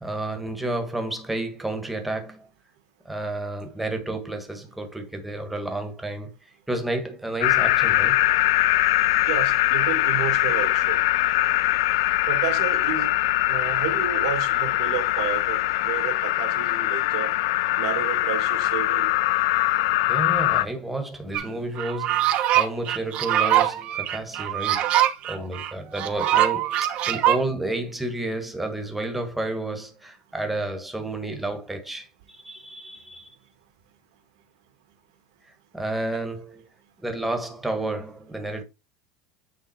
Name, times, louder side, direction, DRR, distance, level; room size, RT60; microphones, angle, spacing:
voice 1, 0.0-2.5 3.0-6.3 6.7-8.2 20.1-33.3 35.7-36.6 37.0-38.6, right 2 dB, 5° right, 1.7 m, -31 dB
sound 1, 7.4-20.6, left 17 dB, 75° left, 0.4 m, -22 dB
voice 2, 9.3-11.0 12.3-13.1 13.5-17.3 17.8-19.1 36.1-36.2, right 9 dB, 75° right, 1.9 m, -31 dB
sound 2, 21.3-21.4 21.8-27.4, right 12 dB, 45° right, 1.1 m, -23 dB
9.2 x 3.7 x 4.4 m
supercardioid pair, 145°, 3 cm